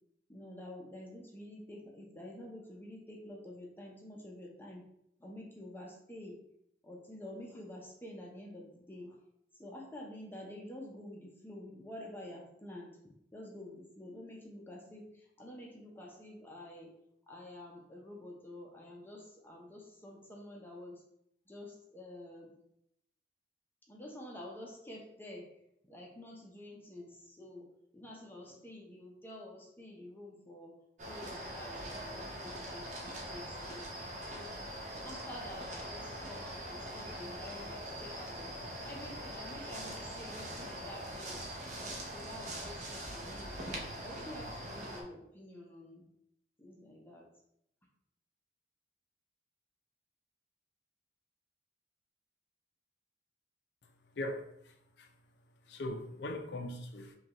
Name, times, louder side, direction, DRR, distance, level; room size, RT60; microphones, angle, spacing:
voice 1, 0.3-4.8 5.2-6.4 6.8-9.2 9.5-16.9 17.3-21.0 21.5-22.6 23.9-25.5 25.8-33.9 34.3-34.6 35.0-38.5 38.8-43.6 44.0-46.1 46.6-47.3, left 1 dB, 10° left, 0.6 m, -49 dB
sound 1, 31.0-45.0, right 1 dB, 45° right, 0.7 m, -42 dB
voice 2, 54.1-55.1 55.7-57.2, left 1 dB, 65° left, 0.5 m, -40 dB
5.1 x 2.4 x 2.9 m
head